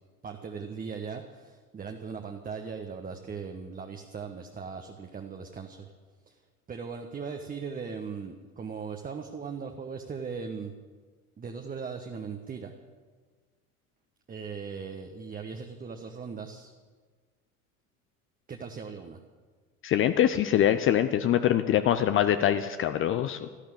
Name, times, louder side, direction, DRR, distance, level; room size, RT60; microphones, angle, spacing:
voice 1, 0.2-5.9 6.3-6.4 6.7-10.7 11.4-12.7 14.3-16.7 18.5-19.2, right 5 dB, 20° right, 4 dB, 1.2 m, -39 dB
voice 2, 19.8-23.5, left 11 dB, 30° left, 10 dB, 0.7 m, -24 dB
14.0 x 11.5 x 8.8 m, 1.5 s
figure-of-eight pair, 75°, 44 cm